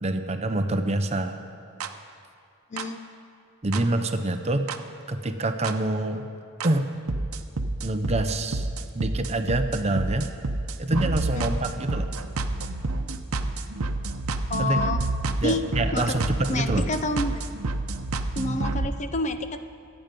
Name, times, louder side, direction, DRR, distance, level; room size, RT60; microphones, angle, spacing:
voice 1, 0.0-1.4 3.6-4.7 5.1-6.3 6.6-6.9 7.8-8.7 8.9-10.3 10.8-12.1 14.6-14.8 15.4-16.9, right 2 dB, 30° right, 7 dB, 0.7 m, -26 dB
sound 1, 1.8-1.9 2.8-2.9 3.7-3.8 4.7-4.8 5.6-5.7 6.6-6.7 7.1-18.9, right 2 dB, 85° right, 0.8 m, -29 dB
voice 2, 2.7-3.0 11.4-11.5 14.5-15.0 15.4-15.6 15.9-16.0 16.5-17.4 18.4-19.6, left 2 dB, 35° left, 9 dB, 0.7 m, -28 dB
25.5 x 9.0 x 5.3 m, 2.4 s
head